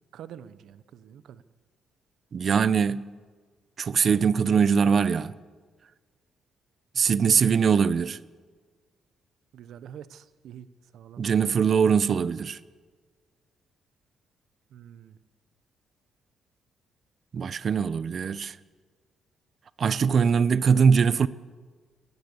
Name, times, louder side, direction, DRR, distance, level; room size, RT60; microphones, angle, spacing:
voice 1, 0.1-1.4 7.4-7.7 9.5-10.7 10.9-11.2 14.7-15.2, right 9 dB, 75° right, 1.1 m, -46 dB
voice 2, 2.3-3.1 3.8-5.3 7.0-8.2 11.2-12.6 17.3-18.6 19.8-21.3, right 6 dB, 50° right, 0.9 m, -22 dB
20.5 x 19.0 x 7.1 m
cardioid pair, 90°, 0 cm